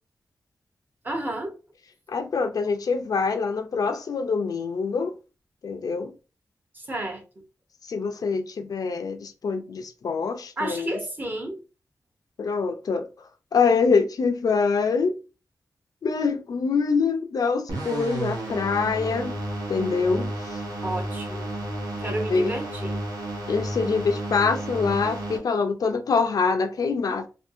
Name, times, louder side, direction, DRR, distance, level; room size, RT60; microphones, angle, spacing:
voice 1, 1.0-1.5 6.7-7.2 10.6-11.6 20.8-21.5 22.0-23.0, right 1 dB, 30° right, 0.7 m, -31 dB
voice 2, 2.1-5.1 5.6-6.1 7.9-11.0 12.4-13.1 13.5-15.1 16.0-19.4 19.7-20.6 22.3-22.5 23.5-27.3, left 5 dB, 70° left, 0.4 m, -25 dB
sound 1, 17.7-25.4, right 1 dB, 85° right, 0.9 m, -32 dB
2.6 x 2.5 x 2.6 m
wide cardioid pair, 120°, 7 cm